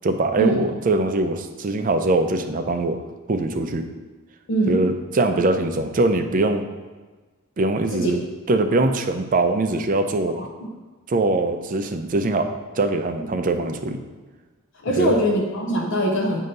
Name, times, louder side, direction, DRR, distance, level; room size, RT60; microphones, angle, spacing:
voice 1, 0.0-3.0 3.3-3.9 4.7-6.6 7.6-8.2 8.5-10.4 11.1-14.0 15.0-15.1, right 2 dB, 40° right, 6 dB, 0.5 m, -22 dB
voice 2, 4.5-4.8 7.9-8.1 10.3-10.5 13.2-13.3 14.8-16.4, right 1 dB, 65° left, 0 dB, 0.7 m, -22 dB
7.7 x 2.8 x 5.3 m, 1.3 s
head